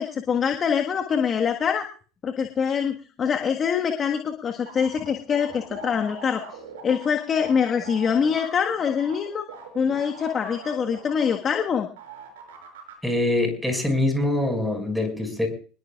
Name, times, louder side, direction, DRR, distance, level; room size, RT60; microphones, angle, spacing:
voice 1, 0.0-1.9 2.2-6.4 6.8-9.4 9.7-11.9, left 7 dB, 35° left, 4 dB, 1.5 m, -24 dB
sound 1, 4.7-11.7 12.0-12.9, right 5 dB, 75° right, 5.7 m, -41 dB
voice 2, 13.0-15.5, left 1 dB, ahead, 3 dB, 5.9 m, -24 dB
26.0 x 20.5 x 2.4 m, 0.41 s
hypercardioid pair, 75°, 0 cm